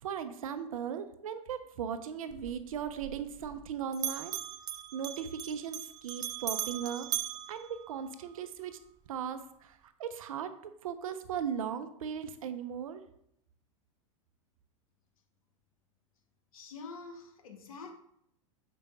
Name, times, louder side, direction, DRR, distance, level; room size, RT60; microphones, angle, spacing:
voice 1, 0.0-4.3 4.9-7.1 7.5-8.8 9.1-13.0, right 8 dB, 80° right, 10 dB, 0.7 m, -38 dB
Bell, 2.3-3.7 3.9-8.4, right 11 dB, 25° right, 0.3 m, -39 dB
voice 2, 16.5-17.9, left 4 dB, 85° left, 4 dB, 1.2 m, -46 dB
6.6 x 5.0 x 3.6 m, 0.74 s
hypercardioid pair, 115°, 17 cm